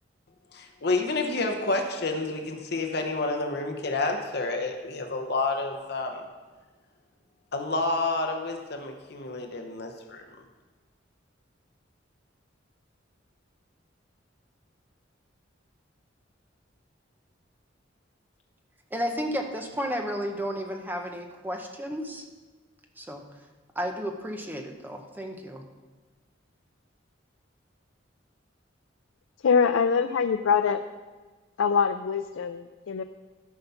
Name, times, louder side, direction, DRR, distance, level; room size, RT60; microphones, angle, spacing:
voice 1, 0.5-6.3 7.5-10.2, left 3 dB, 55° left, 4 dB, 0.9 m, -29 dB
voice 2, 18.9-22.3 23.0-23.2 23.7-25.6, equal, 10° right, 3 dB, 0.8 m, -32 dB
voice 3, 29.4-30.8 31.6-33.0, left 6 dB, 90° left, 8 dB, 0.4 m, -24 dB
13.0 x 5.4 x 5.7 m, 1.3 s
head